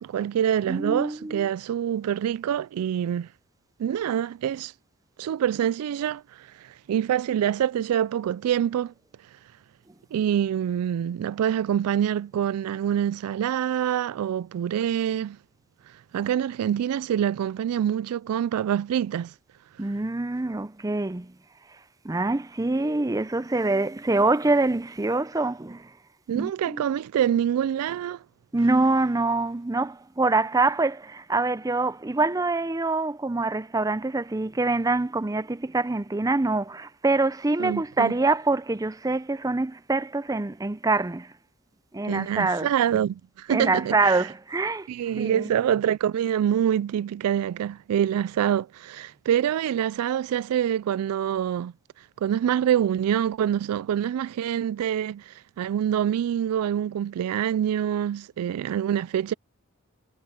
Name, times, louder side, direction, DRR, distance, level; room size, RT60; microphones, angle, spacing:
voice 1, 0.0-3.3 3.8-4.7 5.2-8.9 10.1-15.4 16.1-19.3 26.3-28.2 37.6-38.1 42.1-44.3 44.9-51.7 52.2-59.3, right 9 dB, 85° right, 0.3 m, -26 dB
voice 2, 0.7-1.5 19.8-21.3 22.0-25.9 26.3-26.8 28.5-41.3 41.9-42.7 43.5-45.5, right 3 dB, 15° right, 0.5 m, -25 dB
head